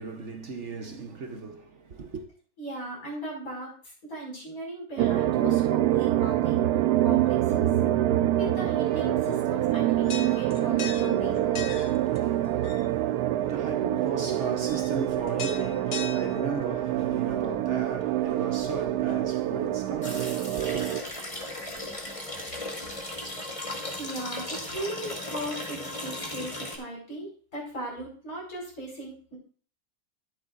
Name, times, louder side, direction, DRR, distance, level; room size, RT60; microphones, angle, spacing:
voice 1, 0.0-2.2 11.7-20.9, right 4 dB, 55° right, 1.2 m, -36 dB
voice 2, 2.6-3.7 4.0-6.6 7.0-7.7 8.3-11.5 24.0-29.4, right 1 dB, 65° left, 5.9 m, -37 dB
sound 1, 5.0-21.0, right 13 dB, 85° right, 1.2 m, -26 dB
old bell Sint-Laurens Belgium, 8.8-23.2, left 6 dB, 50° left, 1.0 m, -44 dB
sound 2, 20.0-26.8, left 1 dB, 20° left, 2.3 m, -36 dB
12.5 x 10.5 x 2.5 m
omnidirectional pair, 1.6 m